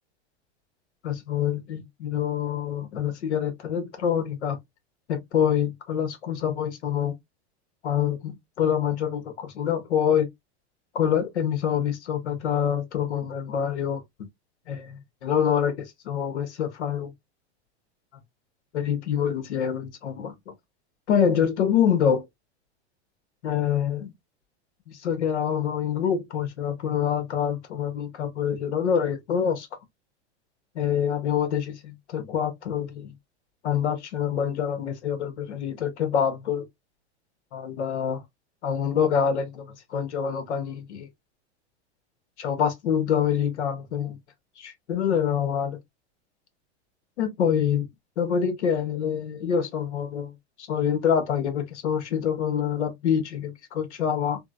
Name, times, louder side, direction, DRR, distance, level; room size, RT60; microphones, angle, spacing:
voice 1, 1.0-4.6 5.1-7.2 7.8-10.3 10.9-14.3 14.7-17.1 18.7-20.5 21.1-22.2 23.4-24.1 24.9-29.7 30.7-33.1 33.6-36.7 37.5-38.2 38.6-41.1 42.4-44.2 44.6-45.8 47.2-47.9 48.2-50.3 50.7-54.4, left 8 dB, 85° left, 1.2 m, -26 dB
3.8 x 2.3 x 2.3 m
hypercardioid pair, 125°, 33 cm